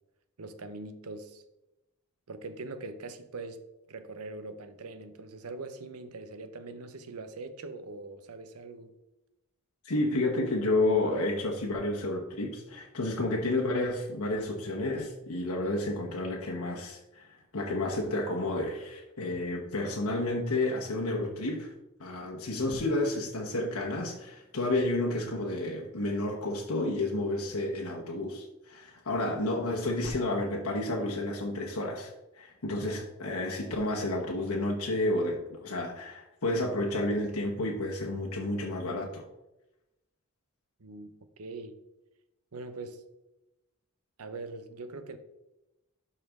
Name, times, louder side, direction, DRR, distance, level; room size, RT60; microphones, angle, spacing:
voice 1, 0.4-1.4 2.3-3.6 3.9-8.9 40.8-41.8 42.5-43.0 44.2-45.2, right 3 dB, 85° right, 0.8 m, -42 dB
voice 2, 9.8-17.3 17.5-21.7 22.0-39.3, left 2 dB, 75° left, 1.0 m, -31 dB
12.0 x 4.3 x 3.6 m
head